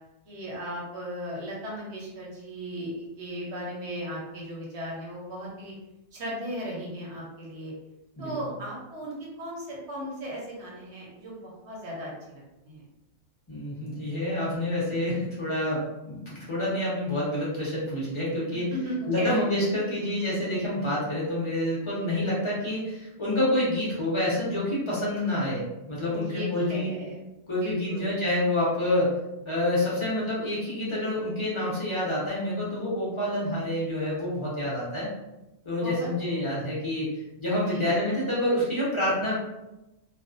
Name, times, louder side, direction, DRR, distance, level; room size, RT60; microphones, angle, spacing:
voice 1, 0.3-5.7 6.1-7.7 8.2-12.8 18.5-19.5 26.1-27.2 27.6-28.2 35.7-36.4 37.7-37.9, equal, 55° right, -4 dB, 1.0 m, -37 dB
voice 2, 13.5-18.7 19.1-26.9 27.5-29.1 29.5-35.1 35.6-39.3, left 1 dB, 40° left, -8 dB, 0.4 m, -28 dB
2.5 x 2.2 x 2.5 m, 0.95 s
omnidirectional pair, 1.6 m